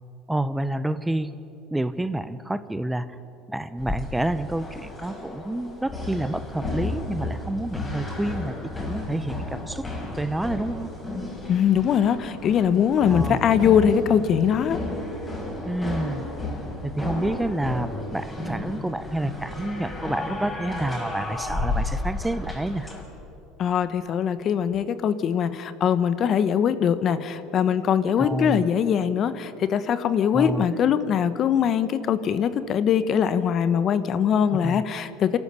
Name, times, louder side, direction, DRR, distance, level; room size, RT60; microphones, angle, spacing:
voice 1, 0.3-1.3 1.7-3.2 3.5-8.5 8.8-9.8 10.2-10.9 13.1-13.4 15.6-16.2 16.8-22.9 28.2-28.6 30.3-30.7 34.5-34.8, right 1 dB, 10° right, 13 dB, 0.8 m, -28 dB
sound 1, 3.8-23.0, left 2 dB, 20° left, 5.5 m, -33 dB
voice 2, 11.5-14.8 23.6-35.4, left 8 dB, 45° left, 13 dB, 1.1 m, -22 dB
27.5 x 13.0 x 8.3 m, 2.9 s
hypercardioid pair, 85°, 0 cm